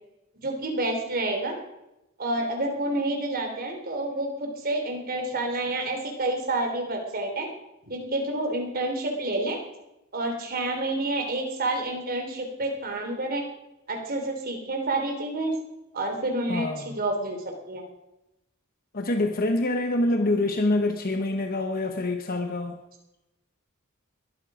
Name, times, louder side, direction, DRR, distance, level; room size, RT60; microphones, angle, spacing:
voice 1, 0.4-1.6 2.2-7.5 7.9-9.6 10.1-13.4 13.9-15.5 15.9-16.7 17.0-17.4 17.7-17.8, right 2 dB, 45° right, 2 dB, 3.5 m, -28 dB
voice 2, 16.5-17.0 18.9-22.8, left 2 dB, 45° left, 6 dB, 1.1 m, -26 dB
21.5 x 12.0 x 5.0 m, 0.93 s
head